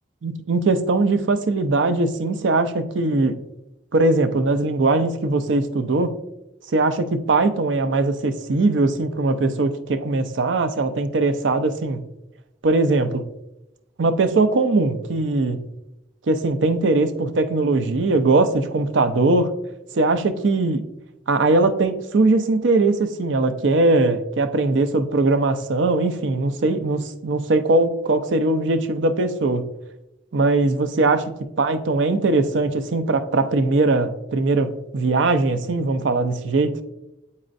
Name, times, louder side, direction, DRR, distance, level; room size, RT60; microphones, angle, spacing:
voice 1, 0.2-3.4 3.9-6.1 6.7-12.0 12.6-13.3 14.0-15.6 16.3-19.5 19.9-20.8 21.3-29.7 30.3-31.2 31.6-36.8, right 2 dB, 75° right, 10 dB, 0.5 m, -20 dB
8.9 x 4.2 x 2.5 m, 0.90 s
head